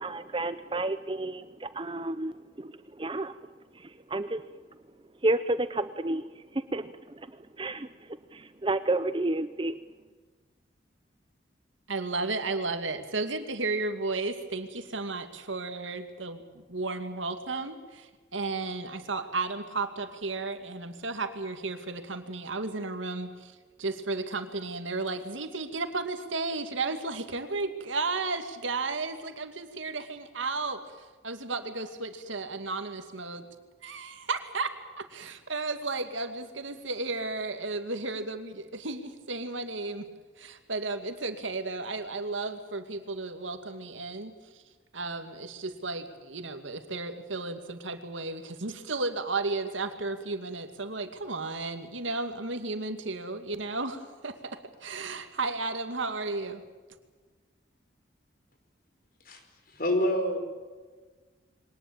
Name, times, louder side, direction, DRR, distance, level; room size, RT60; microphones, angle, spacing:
voice 1, 0.0-2.3 2.6-2.7 3.0-3.3 4.1-4.4 5.2-6.2 6.7-6.8 7.6-7.9 8.3-9.7, right 2 dB, 25° right, 12 dB, 0.6 m, -30 dB
voice 2, 11.9-23.5 23.8-30.8 31.2-33.4 33.8-40.1 40.4-44.3 44.9-56.6, right 3 dB, 85° right, 8 dB, 2.4 m, -33 dB
voice 3, 59.7-60.4, left 1 dB, 50° left, 5 dB, 4.9 m, -26 dB
23.5 x 19.0 x 8.8 m, 1.4 s
head